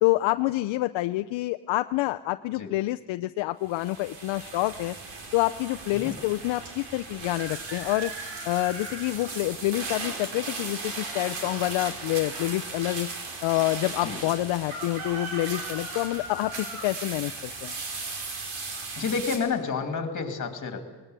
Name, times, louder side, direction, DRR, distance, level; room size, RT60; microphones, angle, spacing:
voice 1, 0.0-4.9 5.3-8.1 8.5-13.1 13.4-17.7, left 17 dB, 75° left, 9 dB, 0.6 m, -27 dB
sound 1, 3.6-19.4, right 3 dB, 75° right, 4.3 m, -37 dB
voice 2, 19.0-20.9, left 5 dB, 40° left, 6 dB, 2.7 m, -30 dB
20.0 x 19.5 x 8.1 m, 1.3 s
cardioid pair, 130°, 46 cm